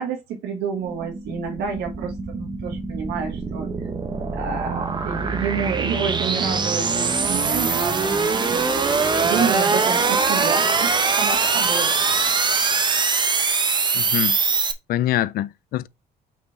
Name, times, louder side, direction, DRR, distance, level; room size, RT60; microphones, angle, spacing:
voice 1, 0.0-3.9 4.3-8.7 9.2-12.0, right 6 dB, 80° right, 1.6 m, -29 dB
sound 1, 0.8-14.7, right 4 dB, 25° right, 1.0 m, -22 dB
voice 2, 13.9-14.4 14.9-15.9, left 13 dB, 65° left, 0.4 m, -24 dB
5.7 x 4.5 x 4.2 m
cardioid pair, 110°, 17 cm